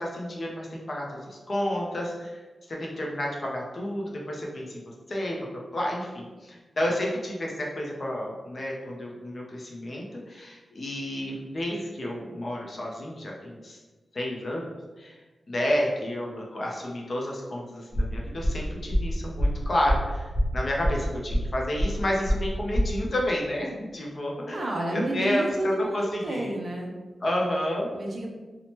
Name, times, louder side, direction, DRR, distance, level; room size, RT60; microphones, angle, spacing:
voice 1, 0.0-2.4 2.7-4.8 5.1-13.8 14.1-14.7 15.0-15.2 15.5-24.6 24.9-26.5 27.2-27.9, left 1 dB, 40° left, -2 dB, 0.5 m, -30 dB
sound 1, 17.9-22.9, equal, 20° right, 0.8 m, -26 dB
voice 2, 24.5-26.9 27.9-28.3, right 1 dB, 45° right, 0 dB, 0.4 m, -30 dB
2.8 x 2.1 x 2.8 m, 1.3 s
wide cardioid pair, 155°, 0 cm